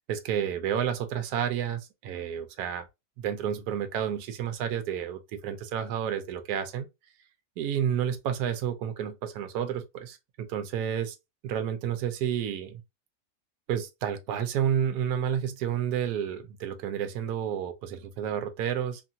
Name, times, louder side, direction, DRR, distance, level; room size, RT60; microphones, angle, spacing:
voice 1, 0.1-2.9 3.2-6.9 7.6-11.2 11.4-12.8 13.7-19.0, right 9 dB, 80° right, 1.1 m, -30 dB
3.0 x 2.7 x 2.3 m
omnidirectional pair, 1.7 m